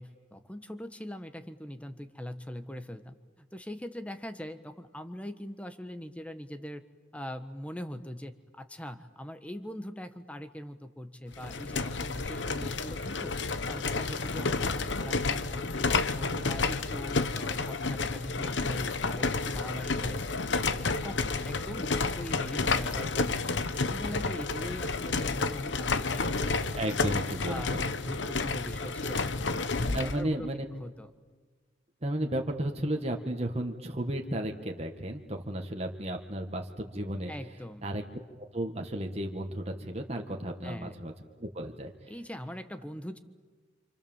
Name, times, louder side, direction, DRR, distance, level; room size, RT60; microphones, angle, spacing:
voice 1, 0.0-6.8 7.1-13.4 13.7-20.4 20.7-23.4 23.7-27.1 27.4-31.1 37.3-37.9 40.6-41.0 42.1-43.2, equal, 5° left, 10 dB, 1.3 m, -41 dB
sound 1, 11.3-30.2, left 3 dB, 75° left, 1.1 m, -30 dB
voice 2, 26.8-27.8 29.9-30.6 32.0-37.3 37.8-38.0 38.5-42.1, right 1 dB, 35° right, 3 dB, 1.8 m, -34 dB
28.5 x 26.5 x 7.3 m, 1.5 s
head